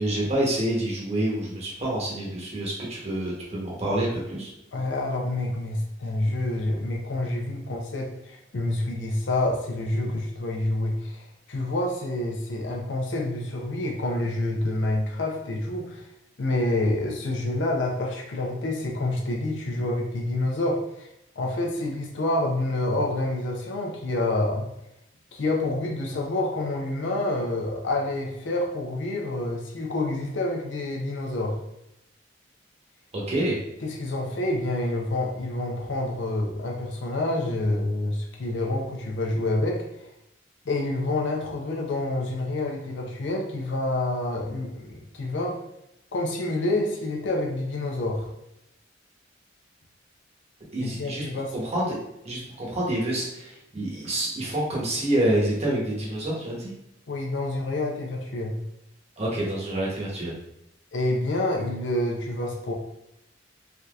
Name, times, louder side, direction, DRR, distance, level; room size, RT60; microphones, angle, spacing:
voice 1, 0.0-4.5 33.1-33.6 50.7-51.3 51.5-52.0 52.2-56.7 59.2-60.3, right 1 dB, 35° right, -4 dB, 0.9 m, -27 dB
voice 2, 4.7-16.1 16.4-21.1 21.4-24.6 25.3-31.6 33.8-39.8 40.7-45.5 46.1-48.3 50.8-51.5 54.0-54.1 57.1-58.6 60.9-62.7, left 2 dB, 70° left, 0 dB, 0.6 m, -28 dB
3.4 x 2.7 x 2.3 m, 0.83 s
head